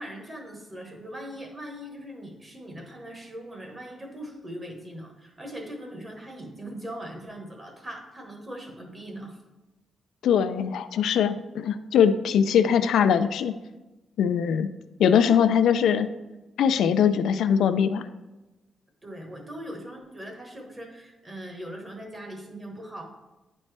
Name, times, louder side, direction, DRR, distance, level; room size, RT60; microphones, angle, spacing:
voice 1, 0.0-9.4 15.1-15.4 19.0-23.0, equal, 20° right, 2 dB, 1.2 m, -40 dB
voice 2, 10.2-13.5 14.2-14.7 15.0-16.1 16.6-18.1, left 8 dB, 90° left, 10 dB, 0.3 m, -21 dB
9.8 x 4.2 x 3.3 m, 1.1 s
cardioid pair, 135°, 0 cm